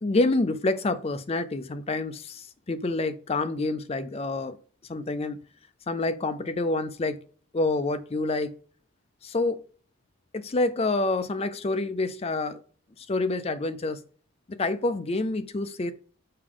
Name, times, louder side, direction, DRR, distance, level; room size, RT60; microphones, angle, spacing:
voice 1, 0.0-4.6 4.9-5.4 5.9-7.2 7.5-8.5 9.2-9.6 10.3-12.6 13.0-14.0 14.5-15.9, left 2 dB, 30° left, 0.5 m, -27 dB
6.6 x 4.8 x 3.8 m
head